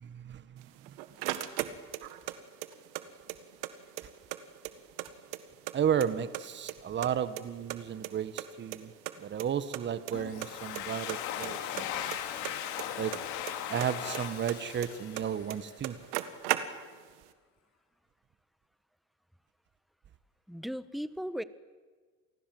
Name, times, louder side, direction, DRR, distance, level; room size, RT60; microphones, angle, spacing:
voice 1, 0.0-0.7 1.3-1.4 5.7-8.9 9.2-12.2 13.0-13.2 13.7-16.0, right 9 dB, 40° right, 13 dB, 1.4 m, -33 dB
sound 1, 0.6-2.3 2.6-3.7 4.0-4.1 4.3-5.7 6.0-6.7 7.0-8.5 8.7-8.8 9.1-9.2 9.4-9.5 9.7-10.1 10.4-10.8 11.1-13.5 13.8-15.2 15.5-15.6 15.8-17.1, right 16 dB, 90° right, 1.7 m, -36 dB
Domestic sounds home sounds, 10.1-15.7, left 10 dB, 75° left, 3.0 m, -38 dB
voice 2, 20.5-21.4, equal, ahead, 15 dB, 1.2 m, -36 dB
28.5 x 20.0 x 7.8 m, 1.5 s
supercardioid pair, 95°, 29 cm